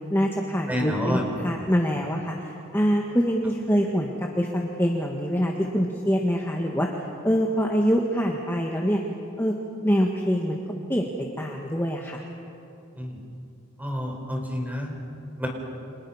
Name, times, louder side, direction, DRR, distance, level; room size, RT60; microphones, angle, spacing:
voice 1, 0.1-6.9 7.2-9.0 9.4-9.5 9.8-10.6 10.9-11.1 11.4-12.2, equal, 10° left, 0 dB, 1.5 m, -24 dB
voice 2, 0.7-1.3 13.0-13.2 13.8-14.9 15.4-15.5, equal, 10° right, 1 dB, 4.6 m, -29 dB
29.5 x 26.5 x 5.7 m, 2.7 s
head